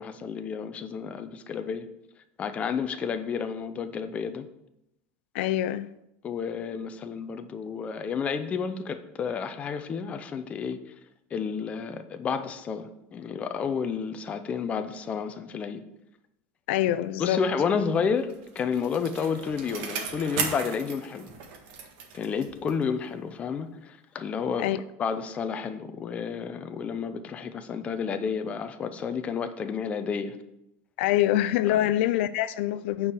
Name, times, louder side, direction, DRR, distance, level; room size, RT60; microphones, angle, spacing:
voice 1, 0.0-1.9 2.4-4.5 6.2-10.9 11.3-15.8 17.2-21.3 22.1-24.7 25.0-30.4 31.7-31.8, left 6 dB, 20° left, 0.6 m, -31 dB
voice 2, 5.3-5.9 16.7-17.4 24.6-24.8 31.0-33.1, left 13 dB, 75° left, 0.4 m, -25 dB
Bicycle, 18.0-22.9 23.3-23.4, right 6 dB, 60° right, 1.6 m, -36 dB
8.9 x 4.7 x 6.8 m
cardioid pair, 170°, 6 cm